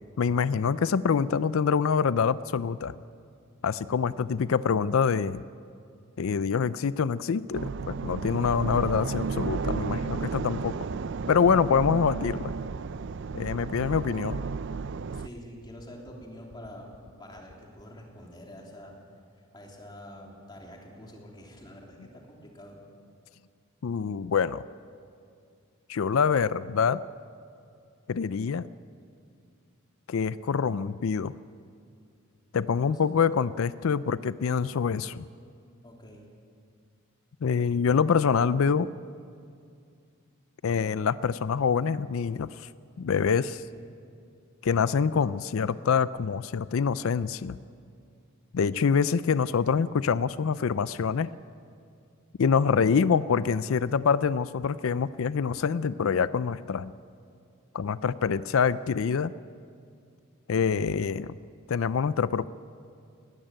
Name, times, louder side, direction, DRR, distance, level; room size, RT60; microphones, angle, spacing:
voice 1, 0.2-2.9 3.6-5.4 6.2-10.7 11.3-12.5 13.3-14.4 23.8-24.6 25.9-27.0 28.1-28.7 30.1-31.3 32.5-35.2 37.4-38.9 40.6-42.7 43.0-43.6 44.6-47.6 48.5-51.3 52.4-56.9 57.7-59.3 60.5-61.4 61.7-62.5, left 6 dB, 70° left, 16 dB, 0.4 m, -25 dB
sound 1, 7.5-15.3, right 4 dB, 55° right, 0.4 m, -33 dB
sound 2, 9.3-17.8, left 1 dB, 45° left, 1.0 m, -52 dB
voice 2, 15.1-16.9 17.2-19.0 19.5-22.8 32.9-33.0 35.8-36.2 43.6-43.9, equal, 20° left, -1 dB, 3.1 m, -46 dB
19.5 x 15.5 x 8.9 m, 2.4 s
head